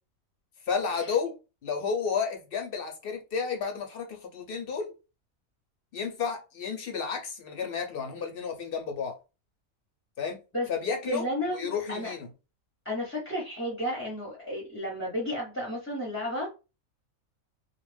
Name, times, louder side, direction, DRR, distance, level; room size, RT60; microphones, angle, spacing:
voice 1, 0.7-1.3 1.6-4.9 5.9-9.2 10.2-10.4 10.7-11.3 11.5-12.3, left 6 dB, 60° left, 0.6 m, -32 dB
voice 2, 11.1-12.1 12.8-16.5, equal, 15° left, 0.5 m, -32 dB
2.4 x 2.1 x 3.2 m
omnidirectional pair, 1.5 m